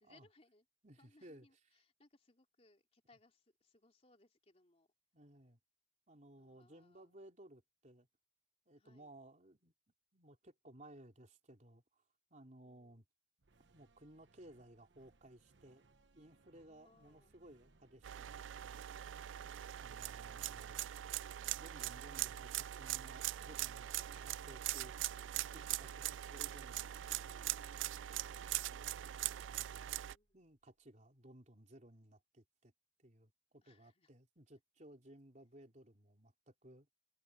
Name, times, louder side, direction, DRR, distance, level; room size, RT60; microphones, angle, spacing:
voice 1, 0.0-0.7 1.0-4.9 6.4-7.2 8.8-9.1 12.6-13.0 16.5-17.4 26.8-28.3 29.8-30.4 33.6-34.1, left 2 dB, 35° left, 3.2 m, -70 dB
voice 2, 0.8-1.5 5.1-5.6 6.1-8.1 8.7-12.0 12.3-13.1 13.6-15.8 16.1-18.8 19.8-20.8 21.4-25.0 25.5-27.5 28.7-29.0 29.4-30.0 30.3-32.7 33.0-36.9, right 1 dB, 40° right, 3.6 m, -59 dB
sound 1, 13.4-30.8, right 3 dB, 70° right, 1.0 m, -70 dB
sound 2, 18.0-30.1, right 13 dB, 90° right, 0.4 m, -42 dB
head